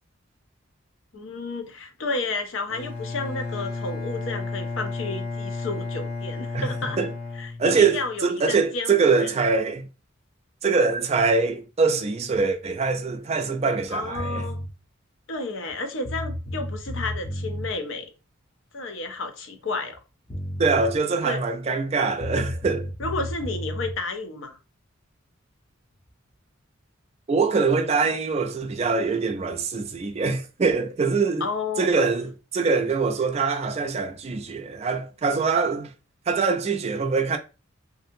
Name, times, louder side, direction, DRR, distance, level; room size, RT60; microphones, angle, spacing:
voice 1, 1.1-7.0 7.4-9.3 13.9-14.6 15.3-18.1 18.7-20.0 21.2-21.4 23.0-24.6 31.4-32.0, left 3 dB, 70° left, 0.6 m, -31 dB
Bowed string instrument, 2.7-8.2, left 3 dB, 45° left, 1.0 m, -33 dB
voice 2, 6.5-7.1 7.6-9.9 10.6-14.4 20.6-22.9 27.3-31.5 31.8-35.9 36.3-37.4, right 4 dB, 30° right, 0.4 m, -23 dB
sound 1, 14.1-14.7 15.7-15.8 16.0-17.7 19.9-20.0 20.3-20.9 22.2-24.0, equal, 20° left, 0.5 m, -32 dB
2.7 x 2.6 x 2.5 m
head